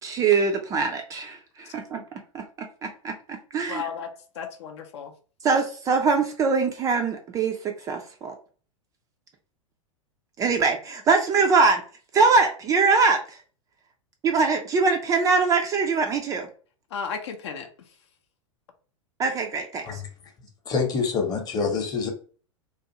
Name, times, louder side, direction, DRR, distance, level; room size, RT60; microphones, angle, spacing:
voice 1, 0.0-3.8 5.4-8.3 10.4-11.8 12.1-13.4 14.2-16.5 19.2-20.0, right 4 dB, 20° right, 0.3 m, -23 dB
voice 2, 3.7-4.1 4.3-5.1 16.9-17.9, left 6 dB, 55° left, 0.5 m, -34 dB
voice 3, 20.7-22.1, left 5 dB, 25° left, 0.8 m, -26 dB
2.4 x 2.3 x 2.8 m
figure-of-eight pair, 95°, 17 cm